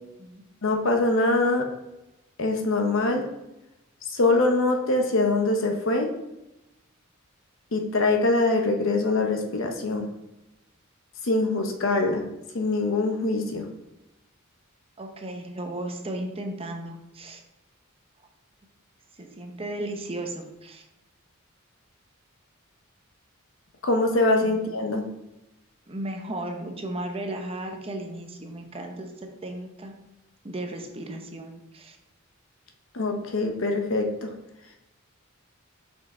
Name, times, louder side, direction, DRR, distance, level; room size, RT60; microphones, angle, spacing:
voice 1, 0.6-1.7 2.4-3.2 4.1-6.1 7.7-10.1 11.2-12.2 12.5-13.7 23.8-25.0 32.9-34.3, left 2 dB, 65° left, 3 dB, 0.9 m, -23 dB
voice 2, 15.0-17.4 19.1-20.8 24.4-24.6 25.9-29.9 30.4-32.0, right 1 dB, 25° right, 4 dB, 0.7 m, -35 dB
5.6 x 5.3 x 3.7 m, 0.94 s
head